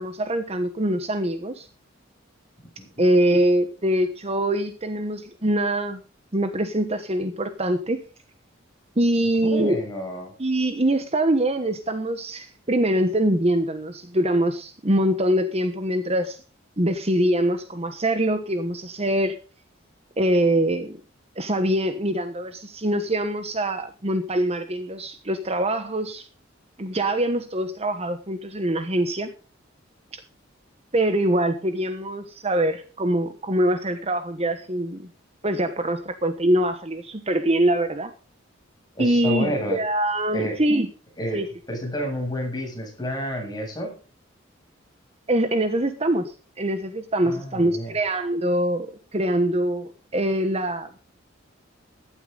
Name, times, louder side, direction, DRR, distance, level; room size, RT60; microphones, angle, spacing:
voice 1, 0.0-1.7 3.0-6.0 6.3-8.0 9.0-9.8 10.4-16.4 16.8-19.4 20.2-21.0 21.4-26.3 26.8-29.3 30.1-30.2 30.9-35.1 35.4-38.1 39.0-40.9 41.3-41.5 45.3-48.9 49.1-51.0, right 1 dB, 30° right, 9 dB, 1.2 m, -24 dB
voice 2, 9.4-10.3 38.9-39.8 40.3-40.6 41.2-41.4 41.7-44.0 47.2-47.9, equal, 20° left, 0 dB, 7.6 m, -30 dB
15.5 x 12.0 x 4.0 m, 0.35 s
head